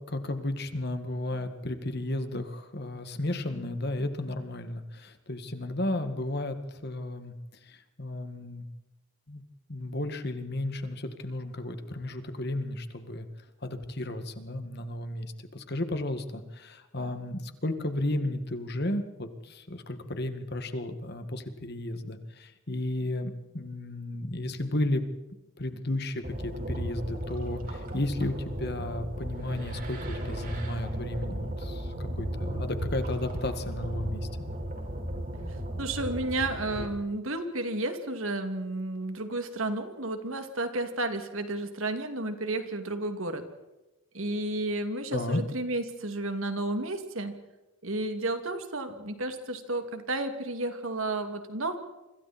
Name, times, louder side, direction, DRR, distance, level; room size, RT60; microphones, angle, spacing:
voice 1, 0.1-6.6 6.8-7.3 7.7-8.6 9.3-9.4 9.7-13.3 13.6-25.0 25.6-31.9 32.2-34.3 45.1-45.4, left 1 dB, 50° left, 8 dB, 2.0 m, -33 dB
sound 1, 26.2-36.9, right 1 dB, 40° right, 5.1 m, -35 dB
voice 2, 35.5-43.4 44.1-47.3 47.8-51.8, right 2 dB, 70° right, 7 dB, 2.7 m, -32 dB
28.5 x 25.5 x 4.4 m, 1.0 s
head